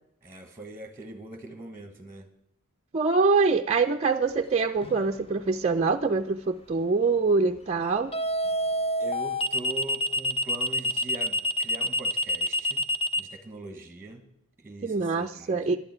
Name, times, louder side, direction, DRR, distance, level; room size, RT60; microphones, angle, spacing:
voice 1, 0.2-2.3 9.0-12.8 13.2-14.2 14.6-15.8, right 2 dB, 10° right, 6 dB, 1.3 m, -42 dB
voice 2, 2.9-8.1 14.8-15.8, right 4 dB, 30° right, 5 dB, 0.4 m, -24 dB
sound 1, 4.8-5.2 8.1-13.2, left 1 dB, 25° left, 0.7 m, -26 dB
11.5 x 6.9 x 9.7 m, 0.75 s
head